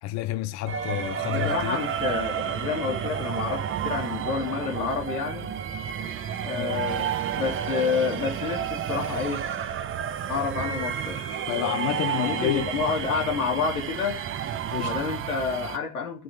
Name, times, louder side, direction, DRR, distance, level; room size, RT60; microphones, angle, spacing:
voice 1, 0.0-1.8 6.5-6.9 11.5-12.7 14.7-14.9, left 14 dB, 40° left, 0.7 m, -29 dB
sound 1, 0.7-15.8, right 8 dB, 30° right, 0.9 m, -31 dB
voice 2, 1.3-5.5 6.4-9.4 10.3-11.2 12.2-14.2 14.8-16.2, left 5 dB, 85° left, 3.0 m, -29 dB
13.0 x 6.2 x 3.8 m
hypercardioid pair, 85°, 43 cm